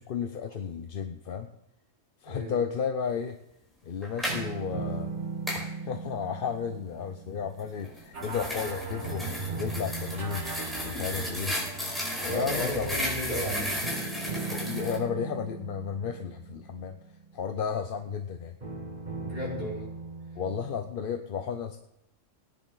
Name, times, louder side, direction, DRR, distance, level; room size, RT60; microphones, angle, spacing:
voice 1, 0.0-1.5 2.2-3.4 3.8-5.1 5.5-9.2 9.6-10.4 10.8-11.6 12.2-12.9 14.5-17.0 17.3-18.5 20.4-21.8, left 7 dB, 50° left, 7 dB, 0.8 m, -33 dB
voice 2, 2.2-2.6 12.2-13.8 19.2-19.9, left 1 dB, 35° left, -5 dB, 5.8 m, -34 dB
sound 1, 4.0-4.4 5.5-5.7 7.8-15.0, left 1 dB, ahead, 4.6 m, -34 dB
sound 2, 4.3-8.6 9.0-12.3 13.8-17.8 18.6-20.8, right 4 dB, 35° right, 1.9 m, -39 dB
sound 3, 8.1-13.8, right 4 dB, 65° right, 2.3 m, -39 dB
20.0 x 9.9 x 3.9 m, 0.83 s
omnidirectional pair, 1.3 m